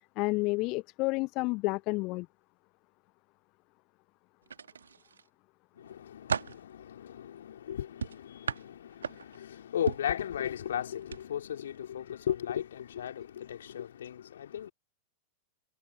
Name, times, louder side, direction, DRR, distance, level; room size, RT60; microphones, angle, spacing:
voice 1, 0.2-2.3, left 25 dB, 40° left, 0.3 m, -30 dB
sound 1, 4.5-5.3 5.8-6.6 8.0-9.4 9.9-10.2 11.0-11.2 11.6-11.8, right 6 dB, 70° right, 1.9 m, -36 dB
voice 2, 5.8-14.7, left 10 dB, 65° left, 3.7 m, -36 dB
figure-of-eight pair, 90°, 0 cm